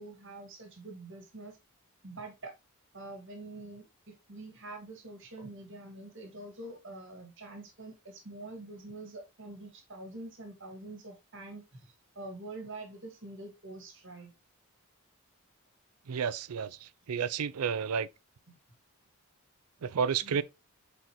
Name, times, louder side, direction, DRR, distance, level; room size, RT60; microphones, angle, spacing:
voice 1, 0.0-1.6 2.0-2.5 2.9-14.3 18.5-18.6 20.2-20.4, right 2 dB, 55° right, 1.9 m, -46 dB
voice 2, 16.1-16.7 17.1-18.1 19.8-20.4, right 7 dB, 85° right, 0.5 m, -30 dB
7.8 x 4.3 x 3.0 m
head